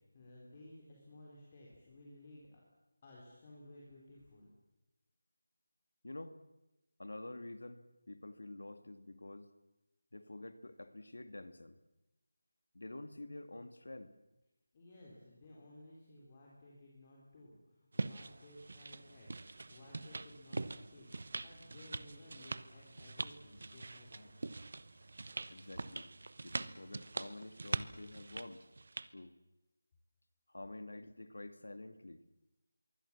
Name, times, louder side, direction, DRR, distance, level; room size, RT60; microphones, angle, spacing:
voice 1, 0.0-2.6 3.0-4.5 14.7-24.3, left 1 dB, 20° left, -3 dB, 3.8 m, -57 dB
voice 2, 6.0-6.4 7.0-9.5 10.1-11.8 12.7-14.1 25.5-26.1 26.4-28.6 29.1-29.3 30.5-32.2, left 2 dB, 85° left, 10 dB, 2.3 m, -48 dB
sound 1, 17.9-29.1, right 3 dB, 50° right, 1.0 m, -43 dB
25.5 x 23.0 x 7.4 m, 0.98 s
figure-of-eight pair, 175°, 0 cm